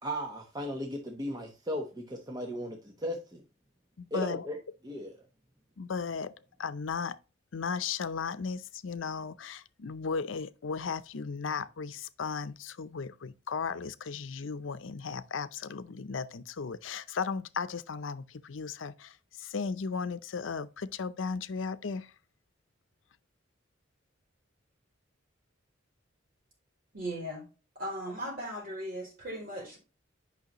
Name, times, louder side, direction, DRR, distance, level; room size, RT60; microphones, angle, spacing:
voice 1, 0.0-3.4 4.1-4.6 4.8-5.1, equal, 20° right, 1.0 m, -36 dB
voice 2, 4.0-4.5 5.8-6.3 6.6-7.2 7.5-22.1, left 5 dB, 85° left, 0.6 m, -36 dB
voice 3, 26.9-27.4 27.7-29.8, right 1 dB, 50° right, 4.4 m, -37 dB
9.2 x 5.7 x 3.0 m
head